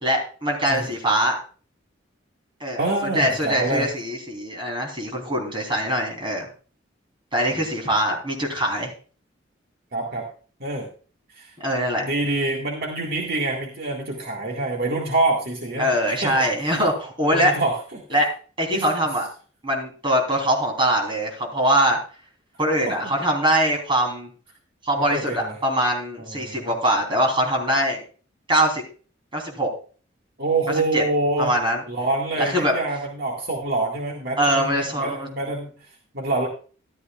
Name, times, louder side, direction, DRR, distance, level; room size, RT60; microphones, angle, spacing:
voice 1, 0.0-1.4 2.6-2.8 3.1-6.5 7.3-8.9 11.6-12.0 15.8-17.5 18.1-18.3 18.6-19.3 19.6-22.0 22.6-24.3 24.8-28.0 28.5-28.8 29.3-29.7 30.9-31.0 31.4-31.8 32.4-32.7 34.4-35.3, right 1 dB, 25° right, 1 dB, 3.5 m, -22 dB
voice 2, 2.7-3.9 7.5-7.6 9.9-10.3 10.6-10.9 11.3-11.5 12.0-15.9 16.2-16.5 17.3-18.2 18.7-18.9 22.9-23.0 25.0-25.6 26.2-26.7 30.4-31.5 31.9-35.9 36.1-36.5, right 2 dB, 55° right, 0 dB, 2.0 m, -26 dB
13.5 x 13.0 x 2.4 m, 0.38 s
head